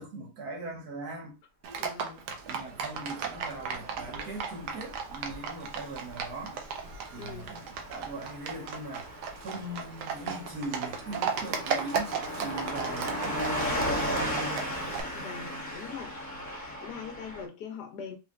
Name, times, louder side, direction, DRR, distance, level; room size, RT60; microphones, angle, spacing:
voice 1, 0.0-1.4 2.5-6.6 7.1-14.7, right 2 dB, 75° right, 1.7 m, -40 dB
Livestock farm animals working animals, 1.6-15.0, right 6 dB, 90° right, 1.3 m, -36 dB
voice 2, 1.8-2.3 7.1-7.5 15.1-16.2 16.8-18.2, left 6 dB, 75° left, 1.4 m, -42 dB
Car passing by / Truck, 3.1-17.4, equal, 10° left, 1.2 m, -37 dB
4.2 x 3.2 x 2.4 m
omnidirectional pair, 1.7 m